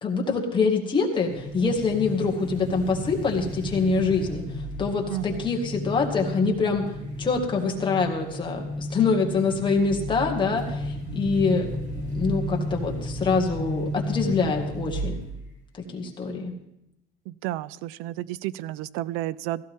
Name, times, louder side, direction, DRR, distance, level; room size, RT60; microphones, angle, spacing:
voice 1, 0.0-4.4 4.8-6.9 7.2-11.7 12.0-15.2 15.9-16.5, left 4 dB, 25° left, 1 dB, 2.1 m, -25 dB
sound 1, 1.2-15.5, equal, 20° right, 6.5 m, -33 dB
voice 2, 5.1-5.5 17.3-19.6, right 15 dB, 85° right, 20 dB, 0.5 m, -32 dB
16.0 x 14.5 x 3.7 m, 0.82 s
cardioid pair, 150°, 21 cm